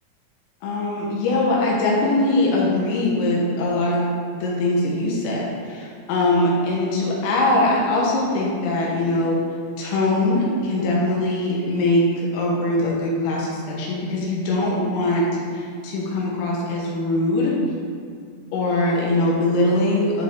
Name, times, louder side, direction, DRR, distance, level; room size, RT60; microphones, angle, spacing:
voice 1, 0.6-4.1 4.3-9.4 9.8-15.3 15.5-17.6 18.5-20.2, left 2 dB, 80° left, -4 dB, 4.0 m, -22 dB
13.0 x 5.7 x 3.7 m, 2.2 s
omnidirectional pair, 5.9 m